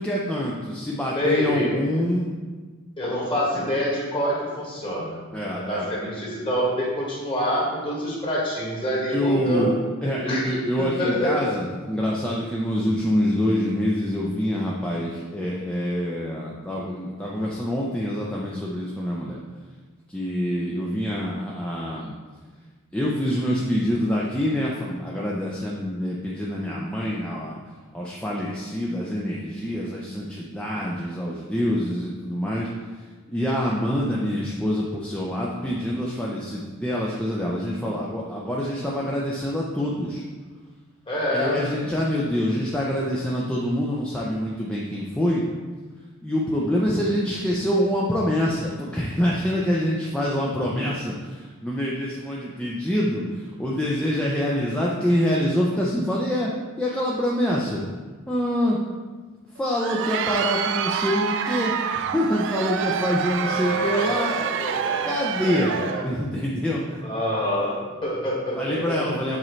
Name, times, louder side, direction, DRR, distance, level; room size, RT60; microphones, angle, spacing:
voice 1, 0.0-2.3 5.3-5.9 9.1-9.7 10.0-19.4 20.1-22.2 22.9-27.6 27.9-40.2 41.3-45.4 46.2-57.8 58.3-58.8 59.5-64.3 65.0-65.7 66.0-67.0 68.5-69.4, equal, 5° left, -5 dB, 0.5 m, -26 dB
voice 2, 1.2-1.9 3.0-5.2 5.5-9.7 10.3-10.5 10.8-11.4 41.1-41.6 63.4-65.1 65.4-66.0 67.0-69.1, equal, 25° left, -5 dB, 1.7 m, -26 dB
Crowd, 59.6-66.1, right 7 dB, 55° right, 0.3 m, -27 dB
7.4 x 4.3 x 3.2 m, 1.4 s
head